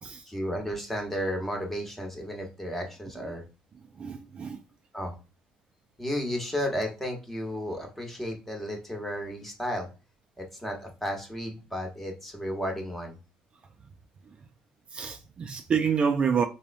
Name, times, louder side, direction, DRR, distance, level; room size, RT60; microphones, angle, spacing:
voice 1, 0.3-3.4 4.9-5.1 6.0-9.9 10.4-13.2, equal, 10° left, 1.0 m, -33 dB
voice 2, 4.0-4.6 14.9-16.4, right 6 dB, 40° right, 0.3 m, -27 dB
3.5 x 2.1 x 2.5 m
supercardioid pair, 85°, 3 cm